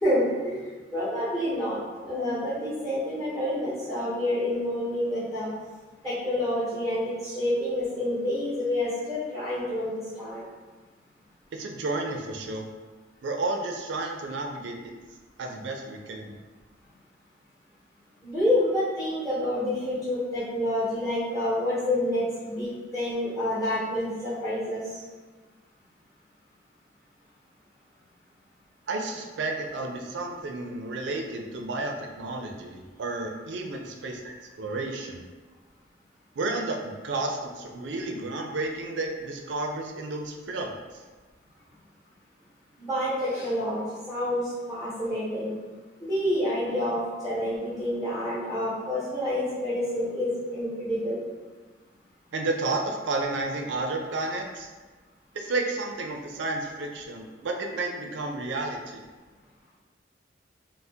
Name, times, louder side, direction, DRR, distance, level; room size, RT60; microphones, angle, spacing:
voice 1, 0.0-5.5 6.0-10.4 18.2-24.8 42.8-43.8 44.1-45.5 46.0-51.2, left 1 dB, 20° left, -15 dB, 1.1 m, -28 dB
voice 2, 11.5-12.7 13.2-14.9 15.4-16.4 28.9-35.2 36.4-41.0 52.3-54.7 55.3-59.0, right 2 dB, 85° right, 2 dB, 0.4 m, -32 dB
2.7 x 2.0 x 3.4 m, 1.3 s
head